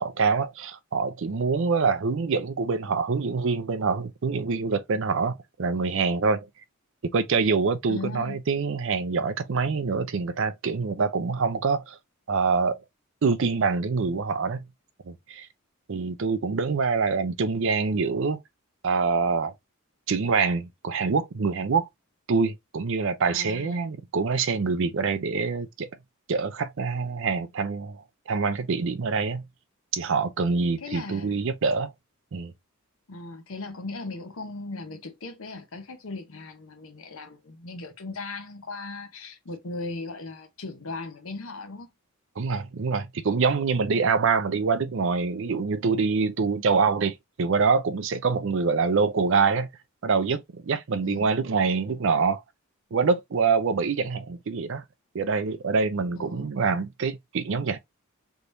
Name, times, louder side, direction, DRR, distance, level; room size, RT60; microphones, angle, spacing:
voice 1, 0.0-6.5 7.1-12.0 12.3-12.8 13.2-14.6 15.1-15.5 15.9-18.4 18.8-19.5 20.1-21.9 22.3-25.9 26.3-28.0 28.3-29.5 29.9-31.9 32.3-32.5 42.4-49.7 50.0-52.4 52.9-54.8 55.1-57.8, right 4 dB, 55° right, 0.5 m, -25 dB
voice 2, 7.9-8.4 23.3-23.9 30.8-31.4 33.1-41.9 51.0-51.3 56.2-56.5, left 3 dB, 65° left, 0.8 m, -38 dB
3.5 x 3.0 x 2.5 m
head